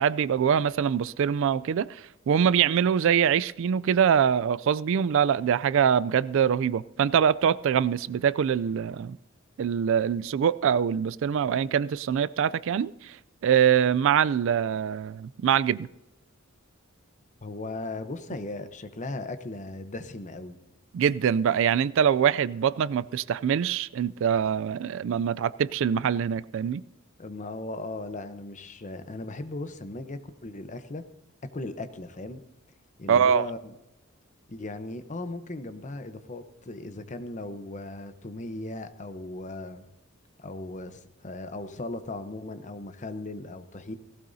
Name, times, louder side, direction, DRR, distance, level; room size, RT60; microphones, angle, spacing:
voice 1, 0.0-9.2 9.6-13.2 13.4-15.9 20.9-26.8 33.1-33.5, right 8 dB, 65° right, 0.3 m, -24 dB
voice 2, 17.4-20.6 27.2-31.0 31.5-32.4 33.0-33.7 34.5-39.8 40.4-44.0, left 2 dB, 35° left, 0.8 m, -37 dB
17.5 x 16.0 x 2.7 m
head